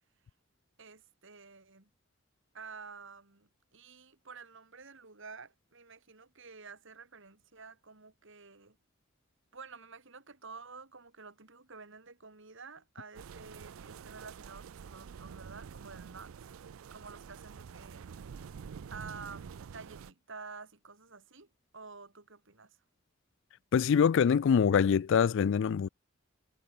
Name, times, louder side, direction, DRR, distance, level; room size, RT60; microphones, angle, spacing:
voice 1, 0.8-1.9 2.5-8.8 9.5-16.3 16.9-18.1 18.9-21.5 21.7-22.8, right 4 dB, 65° right, 3.5 m, -50 dB
sound 1, 13.1-20.1, right 6 dB, 85° right, 0.4 m, -47 dB
voice 2, 23.7-25.9, left 7 dB, 65° left, 0.4 m, -24 dB
head